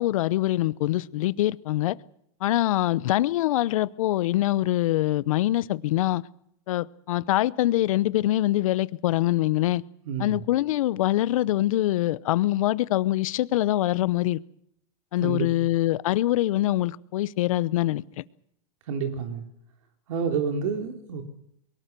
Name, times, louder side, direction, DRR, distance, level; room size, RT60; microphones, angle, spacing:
voice 1, 0.0-2.0 2.4-6.2 6.7-9.8 10.2-14.4 15.1-18.2, left 15 dB, 75° left, 0.8 m, -24 dB
voice 2, 10.0-10.4 15.2-15.7 18.9-19.4 20.1-21.2, right 6 dB, 75° right, 3.3 m, -29 dB
23.0 x 18.5 x 6.8 m
supercardioid pair, 130°, 17 cm